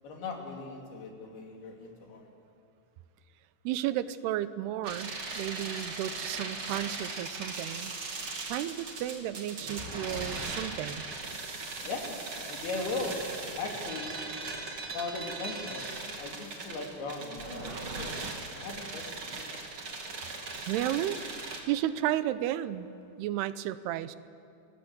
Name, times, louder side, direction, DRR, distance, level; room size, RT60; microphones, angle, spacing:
voice 1, 0.0-2.3 10.1-10.2 11.8-14.2 14.9-15.9 16.2-18.2 18.5-19.5, left 3 dB, 75° left, 1 dB, 4.6 m, -38 dB
voice 2, 3.7-7.9 8.5-11.1 20.7-21.2 21.7-22.9 23.2-24.2, right 13 dB, 90° right, 14 dB, 2.8 m, -33 dB
sound 1, 4.8-21.6, right 3 dB, 35° right, 2.8 m, -39 dB
27.5 x 19.5 x 8.1 m, 2.5 s
omnidirectional pair, 4.5 m